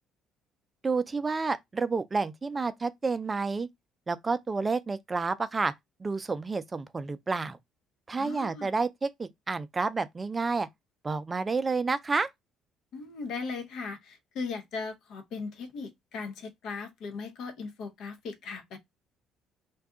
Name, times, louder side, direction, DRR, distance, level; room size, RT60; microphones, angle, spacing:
voice 1, 0.8-3.7 4.1-5.7 6.0-7.6 8.1-10.7 11.0-12.3, right 4 dB, 25° right, 0.4 m, -30 dB
voice 2, 8.2-8.7 12.9-18.8, left 4 dB, 70° left, 0.7 m, -38 dB
2.6 x 2.3 x 3.6 m
supercardioid pair, 75°, 0 cm